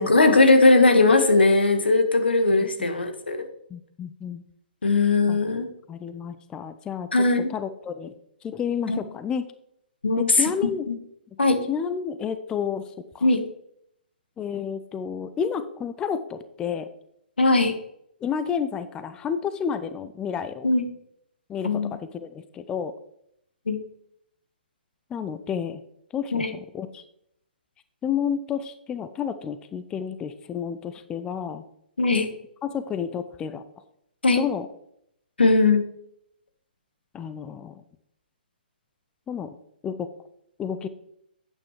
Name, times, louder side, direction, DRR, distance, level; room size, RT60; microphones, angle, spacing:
voice 1, 0.0-3.5 4.8-5.7 7.1-7.5 8.9-9.0 10.0-10.5 10.9-11.0 11.4-11.6 13.2-13.4 17.4-17.8 20.6-20.9 21.6-22.0 23.7-23.8 26.3-26.5 32.0-32.3 34.2-34.4 35.4-35.8, left 3 dB, 85° left, 7 dB, 1.4 m, -19 dB
voice 2, 2.5-2.9 3.7-4.4 5.3-5.4 5.9-7.1 7.5-8.1 8.4-9.4 10.2-10.8 11.7-13.3 14.4-16.9 18.2-20.7 21.5-22.9 25.1-25.8 26.1-27.0 28.0-31.6 32.6-33.6 34.4-34.7 37.1-37.8 39.3-39.6 39.8-40.1 40.6-40.9, left 7 dB, 15° left, 11 dB, 0.4 m, -30 dB
8.9 x 7.4 x 3.2 m, 0.74 s
hypercardioid pair, 135°, 5 cm